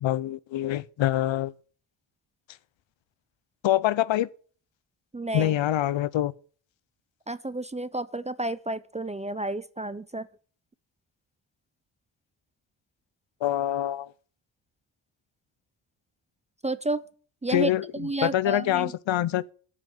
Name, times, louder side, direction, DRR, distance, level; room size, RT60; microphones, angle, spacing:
voice 1, 0.0-1.5 3.6-4.3 5.3-6.3 13.4-14.1 17.5-19.4, left 13 dB, 65° left, 0.6 m, -25 dB
voice 2, 5.1-5.5 7.3-10.3 16.6-17.0 17.4-18.9, right 2 dB, 15° right, 0.4 m, -31 dB
9.0 x 5.7 x 7.7 m
cardioid pair, 80°, 49 cm